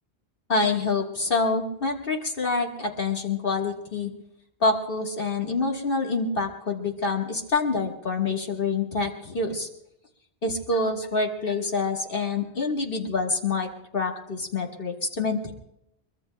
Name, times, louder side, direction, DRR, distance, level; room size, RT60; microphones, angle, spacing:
voice 1, 0.5-4.1 4.6-9.7 10.4-15.5, left 3 dB, 60° left, 1 dB, 1.6 m, -26 dB
22.5 x 22.5 x 2.2 m, 0.83 s
omnidirectional pair, 1.1 m